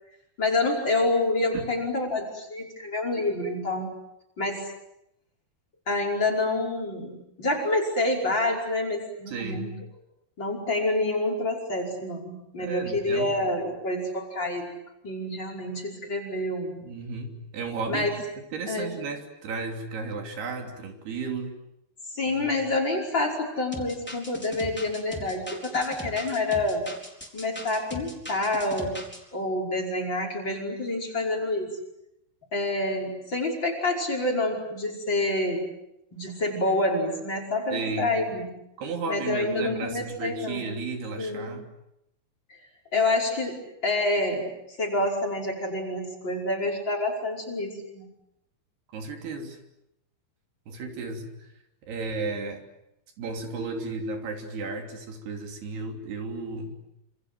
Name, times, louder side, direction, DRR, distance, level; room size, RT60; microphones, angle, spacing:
voice 1, 0.4-3.9 4.4-4.7 5.9-9.7 10.4-14.7 15.0-16.8 17.9-18.1 18.7-19.0 22.1-26.8 27.3-29.0 29.3-31.7 32.5-35.7 36.1-38.5 39.1-40.7 41.2-41.5 42.5-42.6 42.9-48.1, left 2 dB, 25° left, 3 dB, 5.7 m, -27 dB
voice 2, 9.3-9.7 12.6-13.4 16.8-18.1 18.5-21.5 22.3-22.5 37.7-38.2 38.8-41.6 48.9-49.6 50.7-51.5 51.8-52.6 53.2-56.8, right 3 dB, 75° right, 4 dB, 5.1 m, -34 dB
sound 1, 23.7-29.2, equal, 5° left, 4.0 m, -40 dB
27.5 x 27.5 x 7.9 m, 0.83 s
omnidirectional pair, 4.6 m